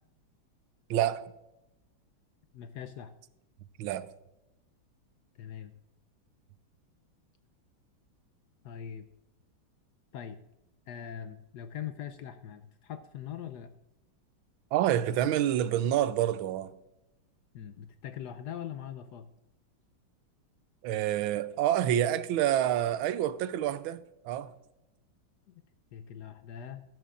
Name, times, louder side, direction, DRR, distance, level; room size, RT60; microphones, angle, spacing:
voice 1, 0.9-1.3 3.8-4.1 14.7-16.7 20.8-24.5, right 11 dB, 85° right, 1.4 m, -28 dB
voice 2, 2.5-3.1 5.4-5.7 8.6-9.1 10.1-10.4 10.9-13.7 17.5-19.3 25.9-26.8, left 9 dB, 70° left, 1.0 m, -41 dB
14.0 x 12.5 x 2.5 m
omnidirectional pair, 2.2 m